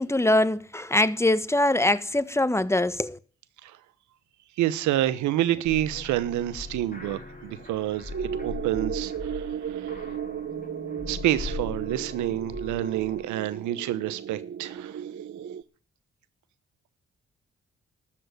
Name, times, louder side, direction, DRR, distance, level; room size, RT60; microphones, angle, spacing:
voice 1, 0.0-3.2, left 1 dB, 10° left, 1.3 m, -23 dB
voice 2, 4.6-10.0 11.1-15.0, right 13 dB, 80° right, 1.1 m, -28 dB
sound 1, 5.6-13.3, left 4 dB, 30° left, 5.8 m, -40 dB
sound 2, 8.1-15.6, right 8 dB, 50° right, 1.0 m, -35 dB
13.0 x 7.5 x 9.3 m
hypercardioid pair, 45°, 29 cm